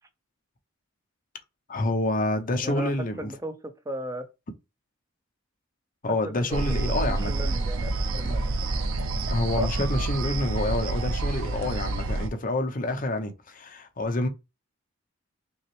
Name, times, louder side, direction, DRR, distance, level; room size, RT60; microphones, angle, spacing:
voice 1, 1.7-3.3 6.0-7.5 8.2-8.4 9.2-14.3, left 1 dB, 40° left, 0.7 m, -28 dB
voice 2, 3.2-4.3 6.1-6.6 6.9-8.4 9.6-9.7, equal, 15° right, 0.5 m, -35 dB
sound 1, 6.5-12.3, right 2 dB, 75° right, 0.5 m, -28 dB
5.4 x 2.1 x 3.1 m
head